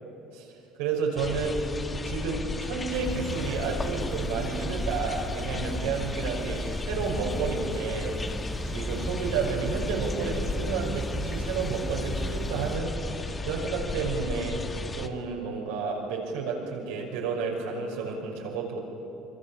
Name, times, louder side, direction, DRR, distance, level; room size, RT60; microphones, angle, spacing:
voice 1, 0.8-1.6 1.9-8.2 8.6-13.0 13.4-14.6 14.9-18.8, right 5 dB, 80° right, -1 dB, 5.8 m, -31 dB
sound 1, 1.2-15.1, left 3 dB, 25° left, 1.5 m, -34 dB
sound 2, 2.9-12.8, right 1 dB, 5° right, 1.4 m, -37 dB
26.0 x 23.0 x 7.4 m, 2.9 s
supercardioid pair, 80°, 0 cm